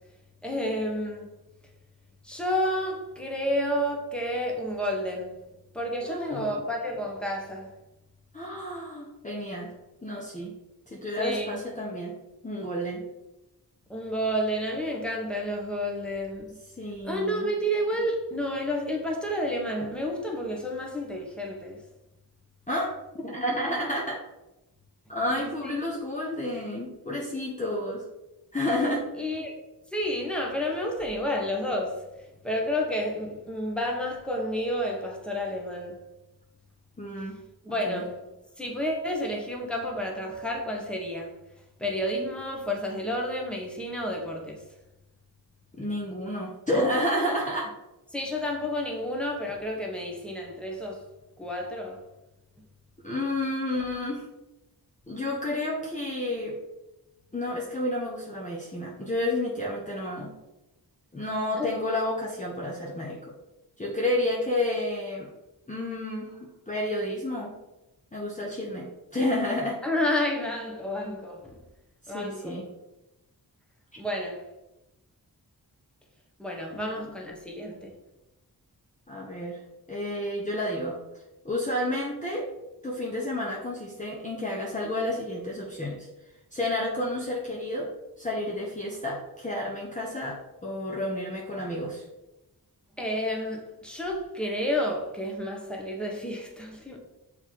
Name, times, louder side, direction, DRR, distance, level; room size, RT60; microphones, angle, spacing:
voice 1, 0.4-1.3 2.2-5.3 5.7-7.7 11.2-11.6 13.9-16.6 17.0-21.8 25.4-25.8 29.2-29.5 29.9-32.0 32.4-36.0 37.6-38.2 38.6-41.3 41.8-44.6 48.1-51.1 51.4-52.0 61.6-61.7 69.8-71.6 72.1-72.6 74.0-74.5 76.4-77.9 93.0-97.0, equal, 5° left, 0 dB, 1.3 m, -30 dB
voice 2, 6.0-6.6 8.3-9.7 10.0-10.5 10.9-12.2 12.4-13.1 16.8-17.5 22.7-24.2 25.1-28.1 28.5-29.1 37.0-37.4 37.9-38.0 45.8-47.7 53.0-54.3 55.1-56.6 57.3-60.4 61.1-63.2 63.8-65.3 65.7-67.6 68.1-69.8 72.0-72.7 76.7-77.1 79.1-79.6 79.9-81.0 81.4-82.5 82.8-86.1 86.5-87.9 88.2-92.0, left 1 dB, 20° left, -3 dB, 1.0 m, -30 dB
6.5 x 3.8 x 4.6 m, 0.97 s
wide cardioid pair, 105°, 38 cm